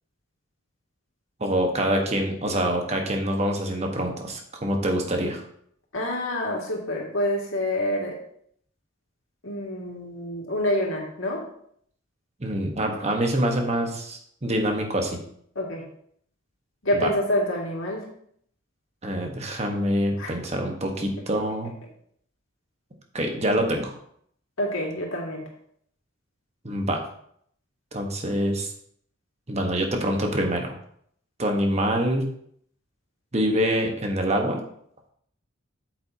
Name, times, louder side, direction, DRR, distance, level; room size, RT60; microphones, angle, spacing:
voice 1, 1.4-5.4 12.4-15.2 17.0-17.1 19.0-21.7 23.1-24.0 26.6-27.0 27.9-28.7 29.5-30.7 31.4-32.3 33.3-34.6, right 1 dB, 35° right, 2 dB, 1.3 m, -25 dB
voice 2, 5.9-8.2 9.4-11.4 15.6-15.8 16.8-18.1 20.2-20.3 24.6-25.4, left 1 dB, 90° left, -2 dB, 2.2 m, -27 dB
8.7 x 7.7 x 2.8 m, 0.66 s
head